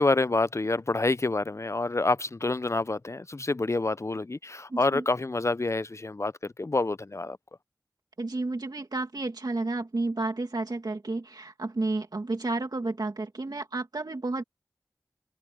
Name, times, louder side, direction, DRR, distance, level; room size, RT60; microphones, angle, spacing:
voice 1, 0.0-7.4, left 2 dB, 45° left, 0.5 m, -27 dB
voice 2, 4.7-5.0 8.2-14.4, right 2 dB, 70° right, 2.3 m, -31 dB
wide cardioid pair, 40°, 7 cm